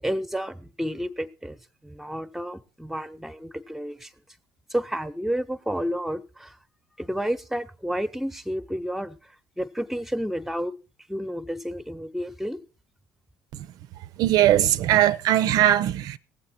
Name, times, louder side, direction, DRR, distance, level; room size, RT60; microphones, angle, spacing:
voice 1, 0.0-1.6 1.8-4.1 4.7-6.6 7.0-10.7 11.1-12.6, equal, 5° right, 1.0 m, -31 dB
voice 2, 14.2-16.2, right 12 dB, 60° right, 0.6 m, -20 dB
18.5 x 7.7 x 4.4 m
hypercardioid pair, 55°, 7 cm